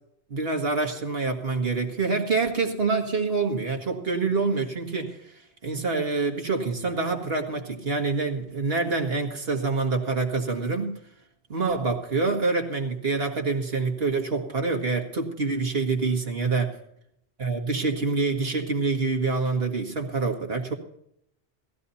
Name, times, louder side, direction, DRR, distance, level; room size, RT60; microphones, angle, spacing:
voice 1, 0.3-5.3 5.6-10.9 11.5-16.7 17.4-20.7, right 4 dB, 70° right, 3 dB, 2.0 m, -26 dB
18.0 x 14.0 x 2.8 m, 0.73 s
omnidirectional pair, 1.1 m